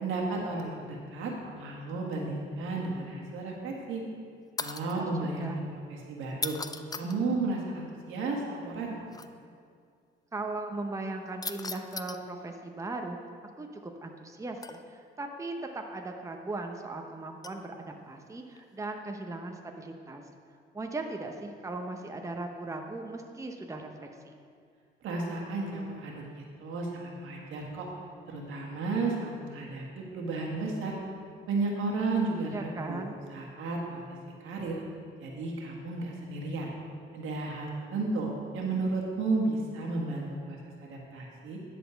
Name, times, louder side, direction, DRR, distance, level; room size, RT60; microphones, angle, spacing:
voice 1, 0.0-4.0 4.6-6.6 7.0-9.1 25.0-27.9 28.3-31.0 31.5-33.0 33.3-34.0 34.4-34.8 35.2-36.7 37.1-38.3 38.5-41.6, right 3 dB, 80° right, -1 dB, 1.7 m, -33 dB
sound 1, 4.6-5.0 6.3-7.2 9.1-9.3 11.4-12.2 14.6-15.0 17.4-17.7 18.6-18.8, left 4 dB, 20° left, 0.4 m, -37 dB
voice 2, 4.8-5.6 10.3-13.2 13.6-20.2 20.7-24.4 32.5-33.2, right 2 dB, 15° right, 3 dB, 0.8 m, -38 dB
10.0 x 4.2 x 6.9 m, 2.2 s
cardioid pair, 90°, 20 cm